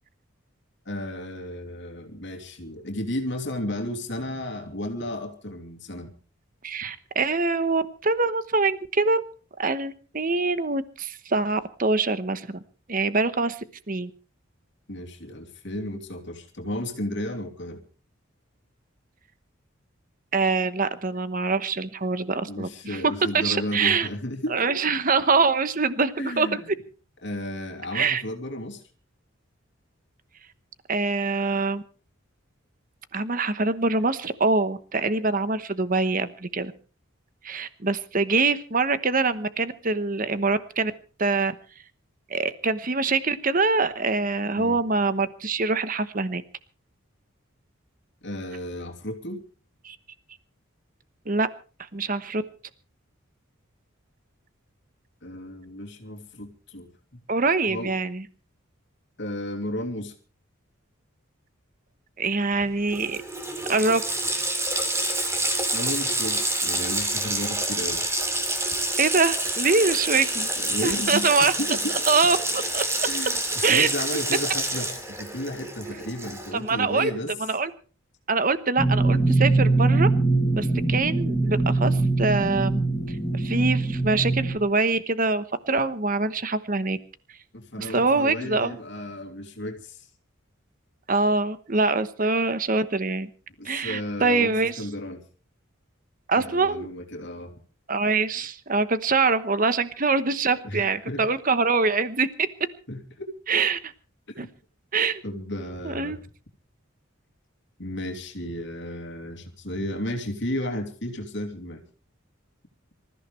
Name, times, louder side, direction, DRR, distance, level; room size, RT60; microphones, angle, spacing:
voice 1, 0.8-6.1 14.9-17.8 22.4-24.8 26.2-26.7 27.2-28.8 44.5-44.8 48.2-49.4 55.2-57.2 57.6-57.9 59.2-60.1 65.6-68.1 70.3-72.0 73.0-77.3 87.5-90.1 93.6-95.2 96.3-97.6 100.6-101.3 102.9-103.3 104.3-104.5 105.2-106.2 107.8-111.8, left 1 dB, 60° left, 3 dB, 2.9 m, -33 dB
voice 2, 6.6-9.2 9.6-12.6 12.9-13.6 13.9-14.1 20.3-24.1 24.5-26.6 27.9-28.2 30.9-31.8 33.1-36.7 37.4-40.9 41.2-41.5 42.3-46.4 49.8-50.0 51.3-51.5 51.9-52.4 57.3-58.2 62.2-63.2 63.7-64.0 69.0-70.5 70.8-71.5 72.1-72.8 73.6-73.9 76.5-77.1 77.4-77.7 78.3-80.1 80.5-82.8 83.3-87.0 87.8-88.7 91.1-93.3 93.6-94.8 96.3-96.9 97.9-102.5 103.5-103.9 104.4-104.5 104.9-105.2 105.8-106.2, right 3 dB, 40° right, 12 dB, 1.1 m, -24 dB
Water tap faucet, 62.6-62.7 62.9-76.7, right 2 dB, 15° right, 3.0 m, -28 dB
sound 1, 78.8-84.6, right 2 dB, 10° left, 2.5 m, -22 dB
26.5 x 14.5 x 3.3 m, 0.37 s
head